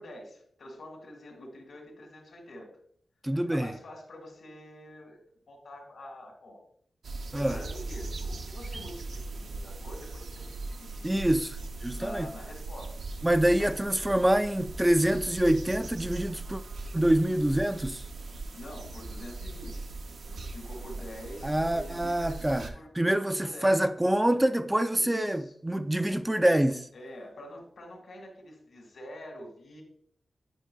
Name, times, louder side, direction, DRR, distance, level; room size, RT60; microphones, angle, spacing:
voice 1, 0.0-2.7 3.3-5.2 5.5-6.6 7.3-11.2 11.9-12.9 17.3-17.4 18.4-19.9 20.3-22.9 23.4-23.8 24.9-25.5 26.9-29.8, left 1 dB, 90° left, 1.9 m, -46 dB
voice 2, 3.2-3.7 7.3-7.6 11.0-12.3 13.2-16.6 16.9-18.0 21.4-22.7 23.0-26.9, right 1 dB, 10° right, 0.3 m, -26 dB
sound 1, 7.0-22.7, right 3 dB, 90° right, 0.6 m, -39 dB
9.0 x 5.4 x 2.2 m
wide cardioid pair, 125°, 0 cm